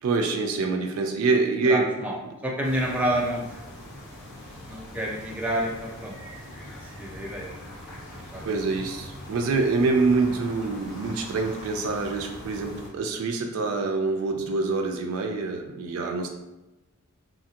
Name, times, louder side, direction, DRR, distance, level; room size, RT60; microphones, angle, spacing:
voice 1, 0.0-1.9 8.1-16.3, right 3 dB, 85° right, 3 dB, 0.3 m, -26 dB
voice 2, 1.7-2.1 2.4-3.6 4.7-6.1 7.0-7.5 7.9-8.0 8.3-8.5 16.0-16.1, right 1 dB, 5° right, -3 dB, 0.3 m, -29 dB
sound 1, 2.6-12.9, left 1 dB, 60° left, 0.6 m, -42 dB
2.8 x 2.4 x 2.8 m, 1.0 s
head